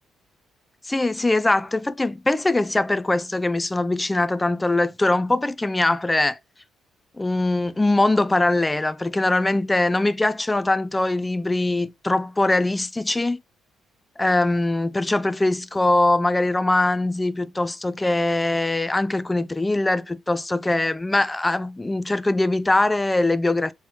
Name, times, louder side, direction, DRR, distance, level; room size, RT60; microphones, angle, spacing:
voice 1, 0.9-6.4 7.2-13.4 14.2-23.7, left 2 dB, 15° left, 0.3 m, -22 dB
3.1 x 3.0 x 2.8 m
hypercardioid pair, 45°, 0 cm